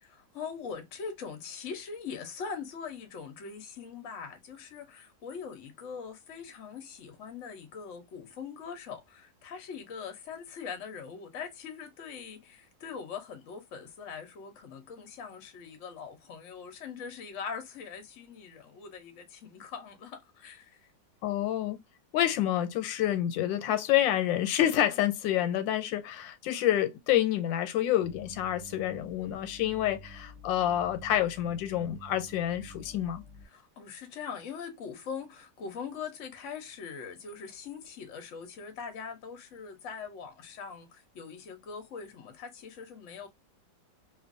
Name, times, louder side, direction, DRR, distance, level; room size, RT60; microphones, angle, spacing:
voice 1, 0.0-20.9 33.4-43.3, left 6 dB, 55° left, 0.9 m, -42 dB
voice 2, 21.2-21.8 22.1-33.2, left 12 dB, 90° left, 1.3 m, -28 dB
sound 1, 28.0-33.5, right 1 dB, 70° right, 0.7 m, -49 dB
2.9 x 2.5 x 2.5 m
omnidirectional pair, 2.0 m